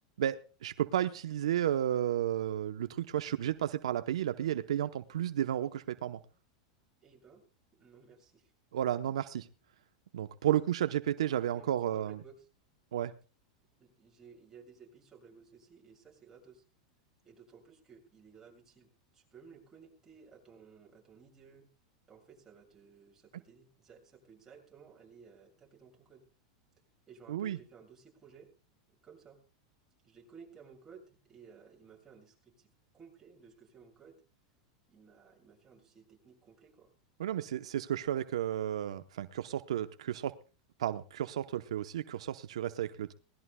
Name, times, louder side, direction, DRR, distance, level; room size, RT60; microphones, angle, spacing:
voice 1, 0.2-6.2 8.7-9.5 10.1-12.2 12.9-13.1 27.3-27.6 37.2-40.3 40.8-43.1, right 11 dB, 90° right, 10 dB, 0.8 m, -32 dB
voice 2, 7.0-7.4 7.8-8.5 11.3-12.5 13.8-16.6 17.2-21.7 22.1-26.2 27.1-28.5 29.0-29.4 30.0-34.2 34.9-36.9, right 6 dB, 15° right, -1 dB, 7.1 m, -57 dB
22.0 x 19.0 x 2.2 m, 0.35 s
supercardioid pair, 135°, 3 cm